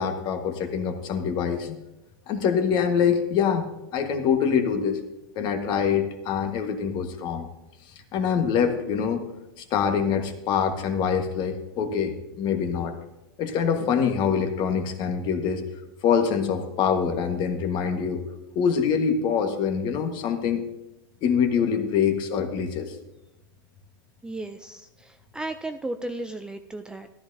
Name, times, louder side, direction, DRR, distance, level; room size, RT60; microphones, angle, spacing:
voice 1, 0.0-1.8 2.3-3.6 3.9-5.0 5.3-7.5 8.1-9.2 9.6-12.9 13.4-15.6 16.0-18.2 18.5-20.6 21.2-22.9, left 7 dB, 40° left, 6 dB, 1.5 m, -24 dB
voice 2, 24.2-27.1, right 2 dB, 5° right, 7 dB, 0.4 m, -35 dB
14.0 x 12.5 x 2.7 m, 0.95 s
hypercardioid pair, 125°, 12 cm